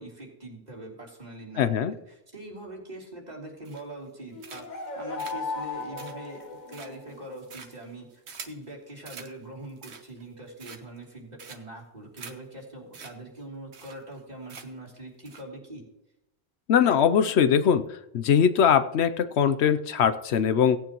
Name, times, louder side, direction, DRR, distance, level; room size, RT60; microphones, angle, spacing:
voice 1, 0.0-15.8, right 1 dB, 40° right, -3 dB, 3.2 m, -43 dB
voice 2, 1.6-1.9 16.7-17.8 18.1-20.8, left 8 dB, 75° left, 12 dB, 0.9 m, -21 dB
sound 1, 3.6-4.1 4.4-4.9 5.2-8.6 9.0-9.3 9.7-10.2 10.6-11.0 11.4-11.8 12.2-12.3 12.6-12.7 12.9-13.1 13.4-13.5 13.7-14.2 14.5-14.9 15.2-15.4, right 5 dB, 75° right, 1.4 m, -45 dB
sound 2, 4.3-7.2, left 3 dB, 45° left, 1.2 m, -36 dB
17.5 x 9.4 x 3.0 m, 0.87 s
omnidirectional pair, 1.1 m